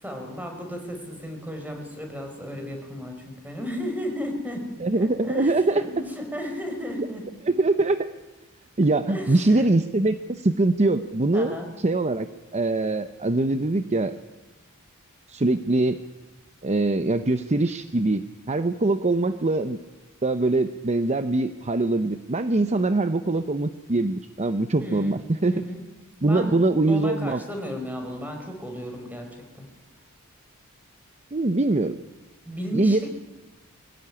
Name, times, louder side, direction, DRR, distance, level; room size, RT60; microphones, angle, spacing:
voice 1, 0.0-4.7 5.0-7.2 9.1-9.7 11.3-11.7 24.8-25.2 25.5-25.8 26.2-29.3 29.5-29.7 32.4-33.1, equal, 10° right, 3 dB, 4.9 m, -34 dB
voice 2, 4.8-5.8 7.4-8.1 8.8-12.3 12.5-14.1 15.3-16.0 16.6-19.8 20.2-25.6 26.2-27.4 31.3-32.0 32.7-33.1, right 2 dB, 30° right, 11 dB, 0.7 m, -23 dB
23.0 x 16.5 x 9.9 m, 1.1 s
head